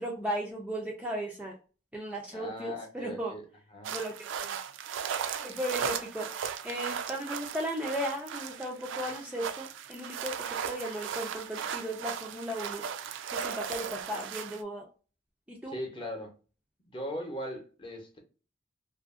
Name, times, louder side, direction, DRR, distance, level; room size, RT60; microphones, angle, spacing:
voice 1, 0.0-1.6 1.9-3.4 3.9-4.6 5.4-12.9 13.3-14.9 15.5-15.8, right 1 dB, 5° right, 0.4 m, -36 dB
voice 2, 2.3-3.4 3.7-4.0 15.7-16.3 16.9-18.2, left 1 dB, 25° left, 0.8 m, -39 dB
sound 1, 3.8-14.6, right 7 dB, 85° right, 0.4 m, -37 dB
2.7 x 2.5 x 2.4 m
head